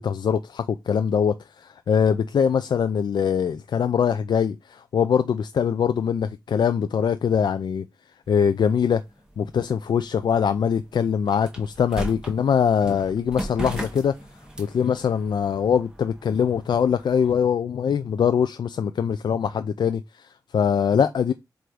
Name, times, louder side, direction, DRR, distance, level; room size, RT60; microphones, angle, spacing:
voice 1, 0.0-7.8 8.3-9.0 9.4-14.1 14.6-21.3, left 7 dB, 80° left, 0.4 m, -23 dB
sound 1, 8.3-17.3, right 1 dB, 10° right, 1.3 m, -39 dB
7.7 x 2.6 x 4.8 m
wide cardioid pair, 115°, 8 cm